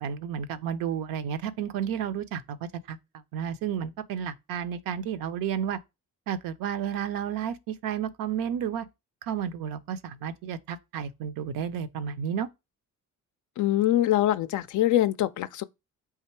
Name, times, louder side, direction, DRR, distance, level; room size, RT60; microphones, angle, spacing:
voice 1, 0.0-2.6 2.9-3.0 3.3-5.8 6.3-8.9 9.2-12.5, right 8 dB, 55° right, 0.6 m, -32 dB
voice 2, 13.6-15.6, left 13 dB, 45° left, 0.4 m, -24 dB
3.6 x 2.8 x 4.4 m
figure-of-eight pair, 40°, 42 cm